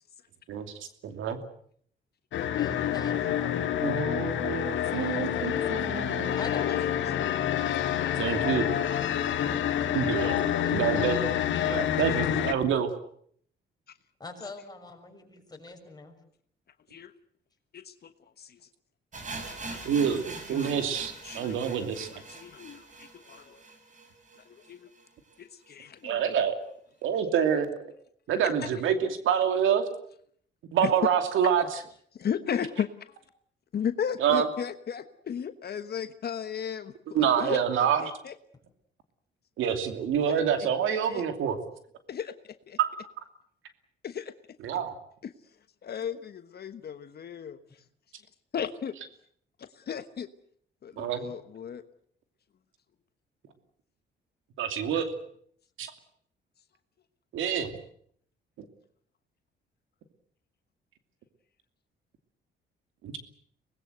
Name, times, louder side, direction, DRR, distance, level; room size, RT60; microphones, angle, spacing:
voice 1, 1.0-1.4 3.8-6.4 8.2-8.6 9.9-10.4 10.7-11.2 11.6-12.9 19.8-22.1 26.0-26.6 27.0-27.8 28.3-29.8 30.7-31.8 34.2-34.5 37.1-38.1 39.6-41.6 42.8-42.9 44.6-44.9 51.0-51.2 54.6-55.1 55.8-55.9 57.3-57.7 63.0-63.2, right 8 dB, 80° right, 8 dB, 2.7 m, -27 dB
sound 1, 2.3-12.5, left 10 dB, 75° left, 1.7 m, -28 dB
voice 2, 2.6-3.8 4.9-5.8 6.3-7.9 10.6-10.8 11.5-12.3 14.2-16.1, left 3 dB, 20° left, 2 dB, 6.4 m, -44 dB
voice 3, 17.7-18.6 19.7-19.8 20.5-20.7 21.2-23.6 24.4-24.9 25.4-26.2 30.8-30.9 32.1-33.2 33.7-37.6 38.0-38.3 40.3-40.4 40.8-41.2 42.1-42.3 42.7-42.8 44.0-44.3 45.2-45.3 45.8-47.6 48.5-48.9 49.6-50.3 50.8-51.8, left 8 dB, 55° left, 10 dB, 1.3 m, -35 dB
sound 2, 19.1-25.0 25.3-25.4 25.6-25.7 26.3-26.4, right 3 dB, 40° right, 5.7 m, -43 dB
24.5 x 20.0 x 8.0 m, 0.64 s
cardioid pair, 90°, 20 cm